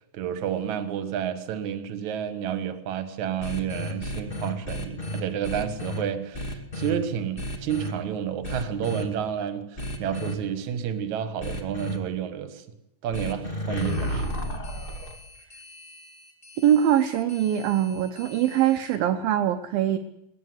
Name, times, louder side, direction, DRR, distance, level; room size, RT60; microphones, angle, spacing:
voice 1, 0.1-12.6 13.0-14.3, right 9 dB, 55° right, 9 dB, 2.5 m, -30 dB
sound 1, 3.4-6.0 6.3-6.9 7.4-7.9 8.4-9.0 9.8-10.3 11.4-12.0 13.1-18.9, left 1 dB, 25° left, 1.2 m, -33 dB
voice 2, 16.6-20.0, right 10 dB, 70° right, 6 dB, 2.4 m, -22 dB
19.5 x 19.5 x 8.0 m, 0.87 s
omnidirectional pair, 4.8 m